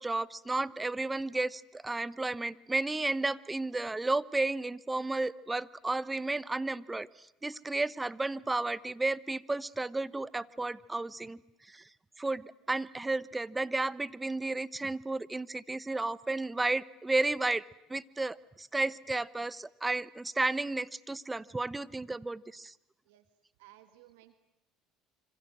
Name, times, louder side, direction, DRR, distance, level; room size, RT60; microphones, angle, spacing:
voice 1, 0.0-11.4 11.7-11.8 12.2-17.6 17.9-22.7, right 2 dB, 15° right, 19 dB, 1.0 m, -33 dB
voice 2, 23.6-24.3, right 15 dB, 90° right, 11 dB, 1.7 m, -57 dB
27.0 x 25.5 x 7.7 m, 0.89 s
supercardioid pair, 90°, 0 cm